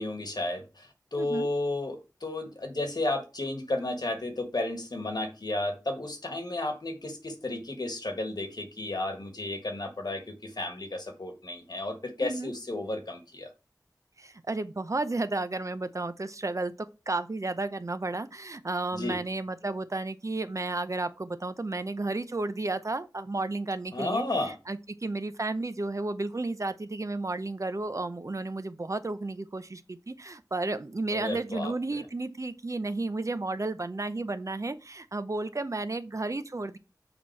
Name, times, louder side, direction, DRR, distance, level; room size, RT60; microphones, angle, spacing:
voice 1, 0.0-13.5 18.9-19.2 23.9-24.5 31.1-31.7, left 2 dB, 70° left, 1.5 m, -33 dB
voice 2, 1.2-1.5 12.2-12.5 14.2-16.7 17.1-36.8, right 2 dB, 45° right, 0.7 m, -32 dB
6.7 x 4.3 x 4.5 m
wide cardioid pair, 45°, 7 cm